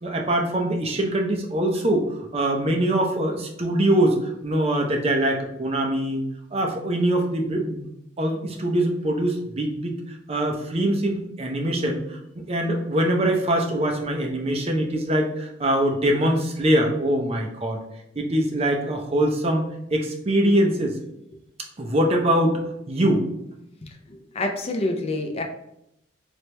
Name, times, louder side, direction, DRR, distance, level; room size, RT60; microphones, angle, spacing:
voice 1, 0.0-6.2 6.5-7.9 8.2-17.8 18.2-21.0 21.8-22.6 22.9-23.3, right 1 dB, 30° right, 2 dB, 0.5 m, -23 dB
voice 2, 23.8-25.4, left 2 dB, 30° left, 3 dB, 0.5 m, -28 dB
3.2 x 2.9 x 3.2 m, 0.80 s
head